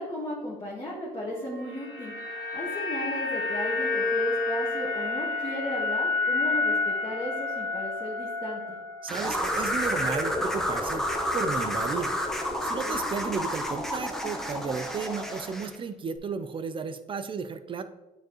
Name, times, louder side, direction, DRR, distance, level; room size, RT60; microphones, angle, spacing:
voice 1, 0.0-2.1 2.5-8.8 12.8-13.0, left 1 dB, 25° left, -5 dB, 1.6 m, -35 dB
sound 1, 1.4-9.7 10.0-10.2, left 3 dB, 85° left, 2.0 m, -30 dB
voice 2, 9.0-11.0 11.3-12.1 12.6-17.8, right 5 dB, 30° right, 11 dB, 0.5 m, -33 dB
sound 2, 9.1-15.7, equal, ahead, 0.9 m, -30 dB
8.9 x 4.7 x 3.0 m, 1.1 s
cardioid pair, 110°, 17 cm